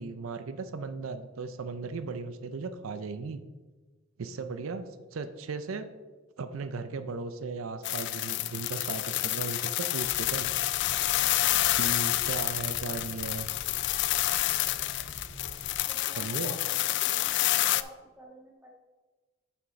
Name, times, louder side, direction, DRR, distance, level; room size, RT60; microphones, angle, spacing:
voice 1, 0.0-3.4 4.2-5.9 6.4-10.5 11.7-13.5 16.2-16.6, right 4 dB, 85° right, 10 dB, 0.5 m, -36 dB
sound 1, 7.8-17.8, left 15 dB, 55° left, 0.3 m, -29 dB
sound 2, 10.0-15.7, equal, 25° left, 2.0 m, -47 dB
voice 2, 15.9-16.6 17.0-17.3 17.6-18.7, right 1 dB, 10° right, -1 dB, 1.5 m, -50 dB
8.0 x 5.9 x 4.0 m, 1.3 s
head